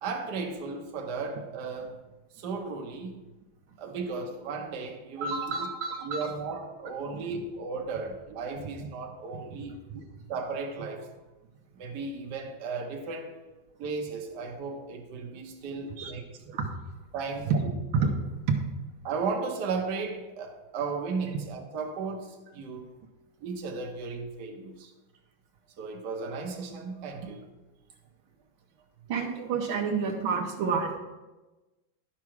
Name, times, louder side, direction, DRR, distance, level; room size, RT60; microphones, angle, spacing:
voice 1, 0.0-2.0 2.3-3.2 3.8-5.7 6.0-9.8 10.3-11.1 11.8-13.4 13.8-16.3 17.1-17.7 19.0-22.9 23.4-24.9 25.8-27.5, right 4 dB, 60° right, 3 dB, 1.4 m, -35 dB
voice 2, 5.2-6.3 7.1-7.2 8.8-8.9 9.3-9.6 9.9-10.0 16.0-16.1 16.5-16.7 17.5-17.6 17.9-18.1 18.5-18.6 29.1-31.0, right 5 dB, 75° right, 2 dB, 1.7 m, -29 dB
10.5 x 6.1 x 4.7 m, 1.1 s
omnidirectional pair, 2.3 m